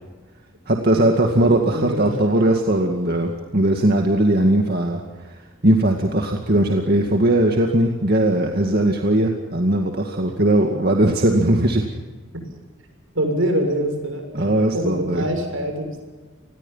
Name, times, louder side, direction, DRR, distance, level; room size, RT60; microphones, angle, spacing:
voice 1, 0.7-5.0 5.3-5.4 5.6-11.8 14.3-15.3, right 1 dB, 50° right, 2 dB, 2.2 m, -19 dB
voice 2, 1.4-2.1 13.1-14.5 14.7-16.0, right 1 dB, 75° right, 5 dB, 7.0 m, -25 dB
29.0 x 21.0 x 5.7 m, 1.3 s
head